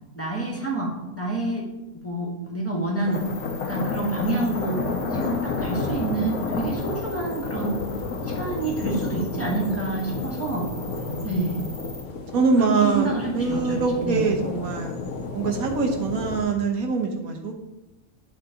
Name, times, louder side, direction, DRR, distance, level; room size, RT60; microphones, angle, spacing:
voice 1, 0.1-1.6 2.0-3.3 3.7-4.8 5.1-7.8 8.2-10.7 11.2-11.6 12.6-12.7 12.9-13.8 14.0-14.3, right 2 dB, 10° left, -3 dB, 1.5 m, -28 dB
sound 1, 3.0-16.4, left 4 dB, 90° left, 1.4 m, -31 dB
sound 2, 3.1-12.0, left 2 dB, 45° right, 1.8 m, -44 dB
voice 2, 3.9-4.3 11.0-11.5 12.3-14.9 15.3-17.5, right 4 dB, 90° right, 3 dB, 1.4 m, -24 dB
11.0 x 3.7 x 3.8 m, 1.0 s
omnidirectional pair, 1.5 m